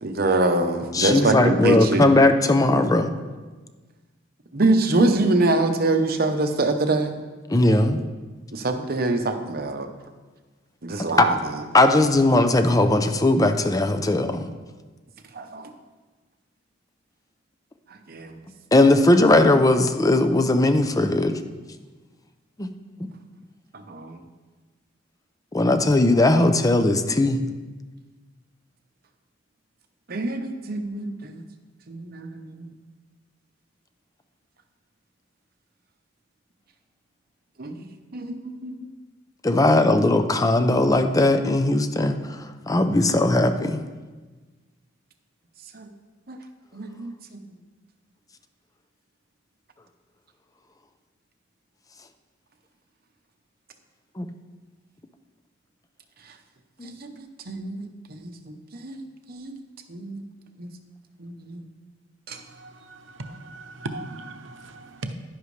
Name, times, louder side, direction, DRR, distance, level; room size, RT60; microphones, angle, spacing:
voice 1, 0.0-2.1 4.5-7.2 8.5-9.9 10.8-11.6 15.3-15.7 18.1-18.4 23.7-24.2 30.1-31.4 31.9-32.7 37.6-37.9 38.1-38.9 45.7-45.9 46.3-46.4 46.7-47.4 56.3-56.4 56.8-59.6 59.9-60.2 60.6-60.7 61.2-61.6 62.3-62.4, right 2 dB, 55° right, 6 dB, 0.9 m, -25 dB
voice 2, 0.9-3.1 7.5-8.0 11.2-11.3 11.7-14.4 18.7-21.4 22.6-22.7 25.5-27.4 39.4-43.8 54.2-54.3 56.8-57.0, left 2 dB, 20° left, 8 dB, 0.6 m, -19 dB
voice 3, 62.6-65.1, right 2 dB, 85° right, 8 dB, 0.8 m, -37 dB
10.5 x 10.5 x 3.3 m, 1.3 s
head